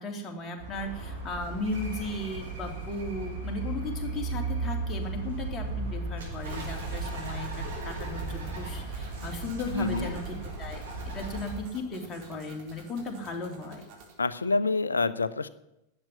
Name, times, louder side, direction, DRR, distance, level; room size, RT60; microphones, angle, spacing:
voice 1, 0.0-13.8, left 2 dB, 20° left, 1 dB, 3.1 m, -36 dB
Bird, 0.6-11.6, right 3 dB, 65° right, 6.5 m, -35 dB
sound 1, 6.4-14.2, right 4 dB, 45° right, 4.3 m, -51 dB
voice 2, 9.7-10.1 14.2-15.5, left 3 dB, 75° left, 15 dB, 0.7 m, -27 dB
12.0 x 8.6 x 9.9 m, 0.88 s
figure-of-eight pair, 90°, 0 cm